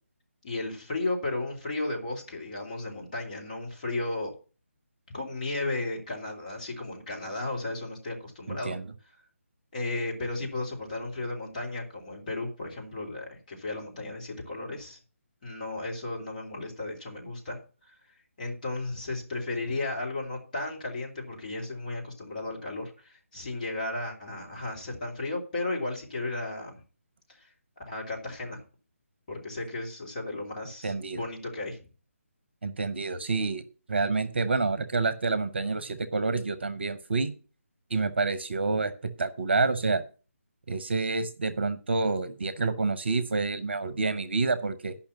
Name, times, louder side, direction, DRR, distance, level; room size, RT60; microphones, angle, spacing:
voice 1, 0.4-4.3 5.1-8.8 9.7-15.0 15.4-17.6 17.9-18.0 18.4-26.8 27.3-27.5 27.9-28.6 29.3-31.8, left 2 dB, 35° left, -1 dB, 2.9 m, -34 dB
voice 2, 8.5-8.9 30.8-31.2 32.6-37.3 37.9-40.0 40.7-44.9, right 3 dB, 50° right, 14 dB, 0.9 m, -28 dB
10.0 x 5.8 x 7.1 m, 0.36 s
figure-of-eight pair, 150°, 8 cm